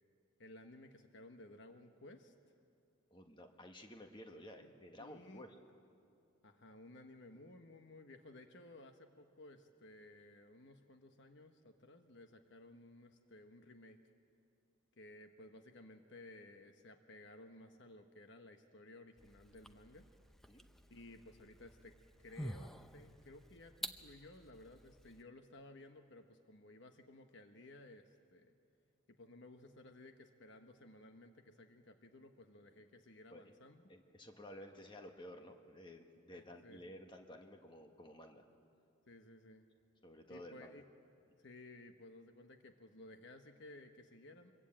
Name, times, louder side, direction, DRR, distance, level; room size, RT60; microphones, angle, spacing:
voice 1, 0.4-2.3 4.6-4.7 5.0-5.5 6.4-14.0 15.0-20.1 20.9-28.5 29.1-33.9 36.3-36.8 39.1-39.7 40.3-40.9 41.4-44.5, left 2 dB, 55° left, 6 dB, 1.1 m, -57 dB
voice 2, 3.1-5.5 20.5-20.7 33.3-33.4 33.9-38.4 40.0-40.7, left 1 dB, 20° left, 4 dB, 1.5 m, -53 dB
sound 1, 19.2-25.2, equal, ahead, 0.6 m, -50 dB
25.0 x 22.5 x 8.8 m, 2.4 s
head